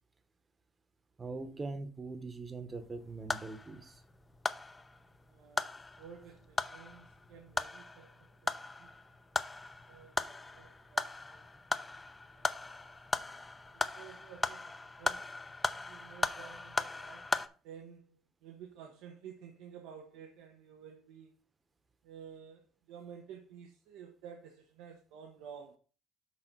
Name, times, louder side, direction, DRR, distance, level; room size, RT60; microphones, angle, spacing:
voice 1, 1.2-4.0, right 3 dB, 30° right, 1.0 m, -42 dB
sound 1, 2.8-17.5, left 3 dB, 20° left, 0.6 m, -38 dB
voice 2, 5.3-8.9 9.9-11.5 12.3-12.9 13.7-15.3 15.8-17.3 17.6-21.3 22.0-25.8, right 7 dB, 90° right, 1.0 m, -52 dB
6.3 x 4.1 x 6.1 m
supercardioid pair, 85°, 0 cm